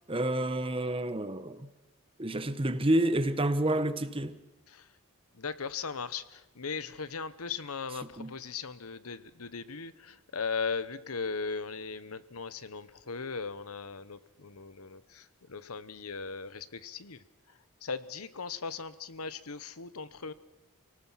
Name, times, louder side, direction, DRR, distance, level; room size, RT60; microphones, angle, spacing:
voice 1, 0.1-1.7 2.2-4.4 8.2-8.3, right 1 dB, 25° right, 1.0 m, -29 dB
voice 2, 5.3-20.3, left 5 dB, 85° left, 1.1 m, -38 dB
29.0 x 18.5 x 5.8 m
head